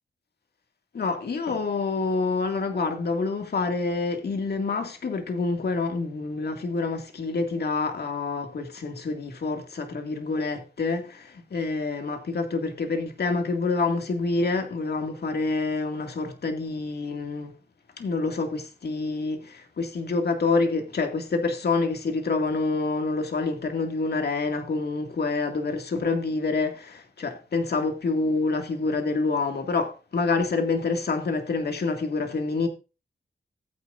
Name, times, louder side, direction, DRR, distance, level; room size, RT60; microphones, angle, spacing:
voice 1, 0.9-17.5 18.0-32.7, left 3 dB, 65° left, 2.2 m, -27 dB
14.5 x 9.0 x 2.6 m
cardioid pair, 70°, 18 cm